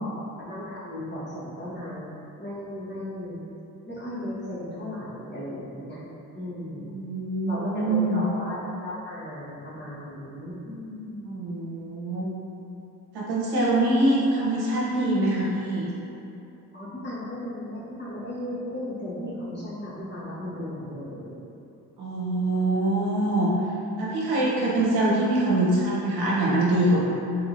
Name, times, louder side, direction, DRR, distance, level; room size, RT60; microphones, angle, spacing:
voice 1, 0.0-2.1 2.4-3.4 3.9-6.0 6.3-6.9 7.4-11.3 16.7-21.3, left 1 dB, 25° left, -9 dB, 1.2 m, -36 dB
voice 2, 6.7-8.2 11.2-12.3 13.1-15.9 22.0-23.5 24.0-27.0, right 1 dB, 80° right, -6 dB, 0.9 m, -24 dB
3.3 x 2.9 x 2.5 m, 2.8 s
supercardioid pair, 55°, 38 cm